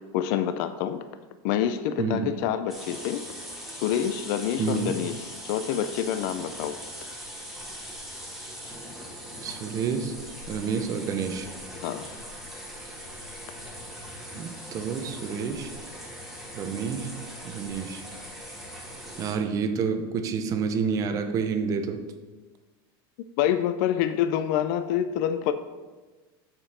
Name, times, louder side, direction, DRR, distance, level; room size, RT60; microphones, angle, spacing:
voice 1, 0.1-1.0 1.4-3.2 3.7-6.8 11.8-12.1 23.4-25.5, left 10 dB, 50° left, 10 dB, 0.4 m, -27 dB
voice 2, 2.0-2.3 4.6-5.0 9.4-10.2 10.5-11.5 14.3-15.7 16.5-17.1 17.4-18.0 19.2-22.0, right 6 dB, 25° right, 7 dB, 0.5 m, -29 dB
sound 1, 2.7-19.3, equal, ahead, 1.4 m, -41 dB
7.3 x 5.2 x 4.2 m, 1.3 s
supercardioid pair, 165°, 13 cm